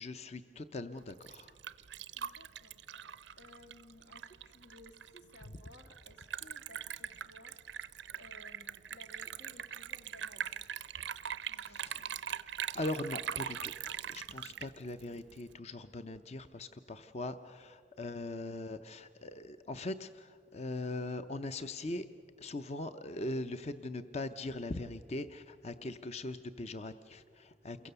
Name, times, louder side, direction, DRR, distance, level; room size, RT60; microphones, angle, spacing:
voice 1, 0.0-1.6 5.4-5.5 11.6-12.1 12.7-13.7 14.1-22.1 22.4-27.9, left 2 dB, 35° left, 9 dB, 0.6 m, -41 dB
Liquid, 1.0-15.5, right 9 dB, 90° right, 0.6 m, -42 dB
voice 2, 2.1-7.8 8.2-10.7 11.5-12.2, left 1 dB, 80° left, 5 dB, 2.1 m, -58 dB
28.5 x 22.5 x 6.8 m, 2.2 s
head